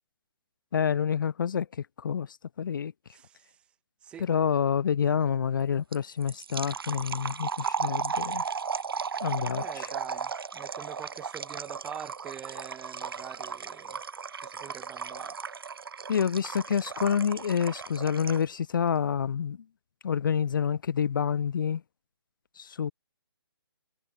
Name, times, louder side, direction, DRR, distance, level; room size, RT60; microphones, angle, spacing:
voice 1, 0.7-2.9 4.2-8.5 9.2-9.9 16.1-19.7 20.0-21.8 22.6-22.9, left 7 dB, 55° left, 0.5 m, -28 dB
voice 2, 3.1-3.5 4.0-4.3 9.6-14.0 14.4-15.4, right 9 dB, 10° right, 0.4 m, -44 dB
sound 1, 5.9-18.5, right 6 dB, 65° right, 1.3 m, -35 dB
figure-of-eight pair, 145°, 13 cm